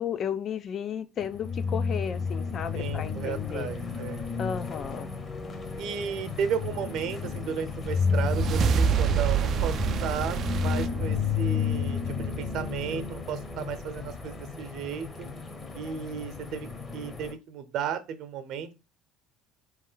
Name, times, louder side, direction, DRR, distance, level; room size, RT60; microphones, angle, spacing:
voice 1, 0.0-3.7 4.4-5.1, left 8 dB, 45° left, 0.5 m, -33 dB
sound 1, 1.2-17.3, left 5 dB, 25° left, 1.0 m, -32 dB
voice 2, 2.7-4.2 5.8-15.3 15.7-18.7, right 7 dB, 65° right, 0.8 m, -34 dB
sound 2, 7.8-12.4, right 7 dB, 50° right, 0.4 m, -28 dB
4.3 x 3.2 x 3.8 m
supercardioid pair, 105°, 0 cm